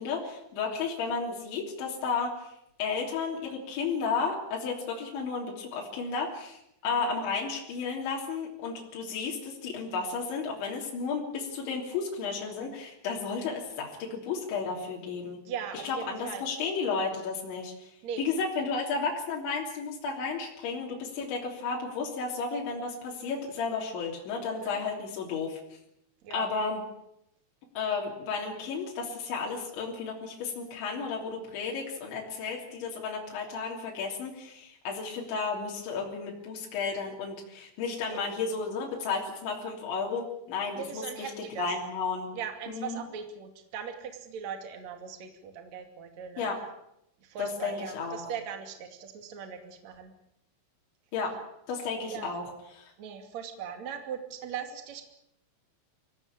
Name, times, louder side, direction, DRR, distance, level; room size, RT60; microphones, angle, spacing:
voice 1, 0.0-2.5 2.8-15.4 15.8-17.9 18.2-25.6 26.3-26.8 27.8-41.3 41.6-42.3 42.7-43.0 46.4-46.6 47.4-48.2 51.1-51.3 51.7-52.4 52.8-52.9, left 5 dB, 75° left, -2 dB, 5.5 m, -33 dB
voice 2, 15.4-16.5 18.0-18.2 24.6-24.8 26.2-26.5 38.2-38.3 40.7-41.7 42.3-46.5 47.2-50.1 52.1-52.3 53.0-55.0, right 7 dB, 45° right, 5 dB, 3.3 m, -39 dB
24.5 x 17.0 x 8.8 m, 0.80 s
omnidirectional pair, 5.4 m